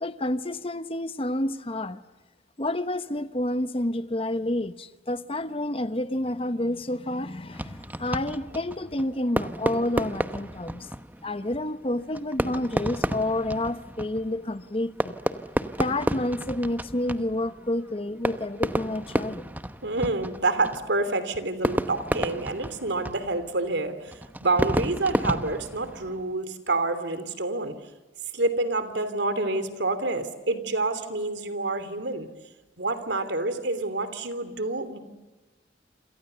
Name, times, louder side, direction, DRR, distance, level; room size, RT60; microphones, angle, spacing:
voice 1, 0.0-2.0 2.6-10.9 11.2-15.2 15.8-19.5, left 1 dB, 30° left, 12 dB, 1.0 m, -29 dB
Fireworks, 7.5-26.3, right 1 dB, 10° right, 1.0 m, -32 dB
voice 2, 19.8-27.8 28.3-32.3 32.8-35.0, right 2 dB, 80° right, 12 dB, 3.1 m, -28 dB
28.5 x 27.5 x 6.9 m, 1.1 s
head